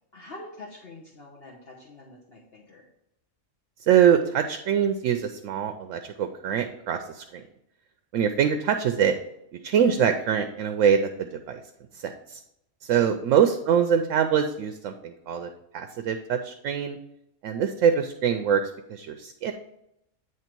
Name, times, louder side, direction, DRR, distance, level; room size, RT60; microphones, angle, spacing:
voice 1, 0.1-2.8 13.3-13.4, left 2 dB, 50° left, -3 dB, 1.2 m, -45 dB
voice 2, 3.8-7.4 8.1-9.1 9.6-11.6 11.9-12.4 12.8-17.0 17.4-19.5, right 8 dB, 75° right, 7 dB, 0.9 m, -24 dB
9.4 x 3.1 x 4.5 m, 0.82 s
omnidirectional pair, 1.4 m